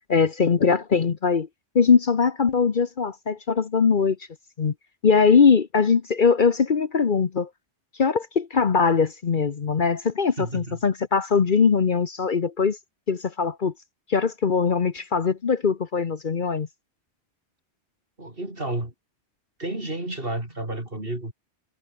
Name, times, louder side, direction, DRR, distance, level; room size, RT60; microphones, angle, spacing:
voice 1, 0.1-1.5 1.7-4.2 4.6-4.7 5.0-7.5 8.0-12.8 13.1-13.7 14.1-16.7, left 5 dB, 50° left, 1.1 m, -21 dB
voice 2, 10.4-10.8 18.2-18.9 19.6-21.3, right 1 dB, 55° right, 5.4 m, -31 dB
omnidirectional pair, 1.1 m